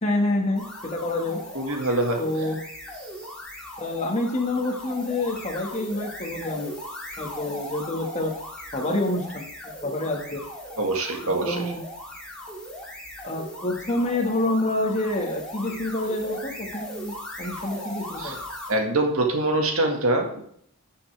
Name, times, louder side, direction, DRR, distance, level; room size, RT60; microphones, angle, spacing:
voice 1, 0.0-1.4 2.2-2.6 3.8-6.7 7.2-8.3 8.7-10.4 11.4-11.8 13.2-18.4, left 2 dB, 30° left, 1 dB, 1.7 m, -27 dB
sound 1, 0.5-18.8, equal, 5° left, 2.5 m, -38 dB
voice 2, 1.6-2.2 10.8-11.6 18.2-18.4 18.7-20.4, right 2 dB, 70° right, 3 dB, 1.8 m, -24 dB
12.0 x 7.0 x 3.4 m, 0.65 s
head